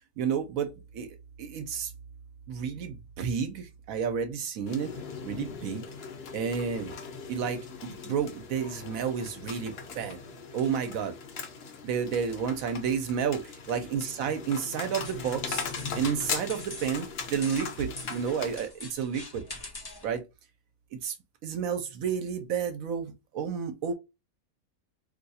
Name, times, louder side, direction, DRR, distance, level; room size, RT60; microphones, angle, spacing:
voice 1, 0.2-1.9 2.5-4.9 5.2-5.9 6.3-6.9 7.3-10.2 10.5-11.1 11.8-15.6 15.9-19.4 20.0-20.2 20.9-21.2 21.4-23.9, right 7 dB, 70° right, 1.0 m, -31 dB
sound 1, 4.7-18.7, left 5 dB, 55° left, 0.8 m, -39 dB
sound 2, 15.0-20.2, left 2 dB, 40° left, 0.3 m, -44 dB
2.6 x 2.3 x 4.0 m
omnidirectional pair, 1.5 m